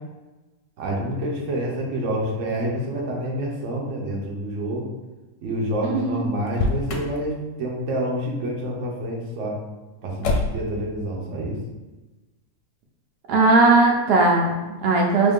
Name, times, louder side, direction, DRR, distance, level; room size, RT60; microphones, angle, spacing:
voice 1, 0.8-4.9 5.4-9.6 10.0-11.6, right 1 dB, 55° right, -2 dB, 1.0 m, -28 dB
voice 2, 5.8-6.2 13.3-15.3, right 2 dB, 85° right, 0 dB, 1.2 m, -18 dB
Motor vehicle (road), 6.4-7.2 10.2-10.8, left 2 dB, 65° left, 0.8 m, -25 dB
3.6 x 2.6 x 3.5 m, 1.1 s
omnidirectional pair, 1.7 m